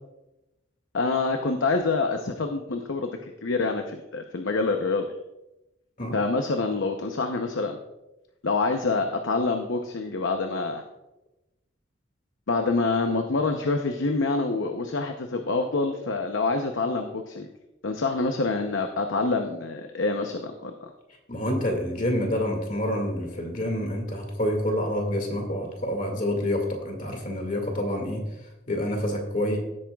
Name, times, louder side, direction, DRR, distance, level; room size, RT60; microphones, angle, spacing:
voice 1, 0.9-3.1 3.4-5.0 6.1-7.8 8.4-10.8 12.5-17.5 17.8-20.9, left 3 dB, 75° left, 5 dB, 0.7 m, -26 dB
voice 2, 21.3-28.2 28.7-29.6, left 1 dB, 40° left, 2 dB, 2.0 m, -27 dB
16.5 x 8.5 x 2.3 m, 0.96 s
head